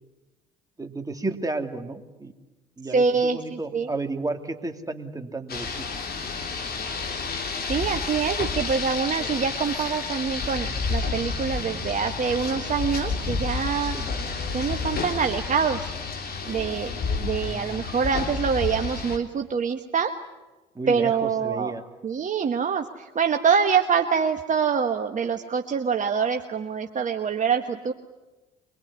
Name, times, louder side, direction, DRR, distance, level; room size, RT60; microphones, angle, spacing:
voice 1, 0.8-2.3 2.8-5.9 13.9-14.0 20.7-21.8, right 2 dB, 15° right, 5 dB, 2.8 m, -32 dB
voice 2, 2.9-3.9 7.7-14.0 14.5-15.9 16.4-20.1 20.9-21.7 22.0-27.9, right 6 dB, 40° right, 5 dB, 1.5 m, -25 dB
Rain, 5.5-19.2, left 4 dB, 50° left, 3.6 m, -30 dB
24.5 x 20.5 x 9.8 m, 1.1 s
hypercardioid pair, 65°, 21 cm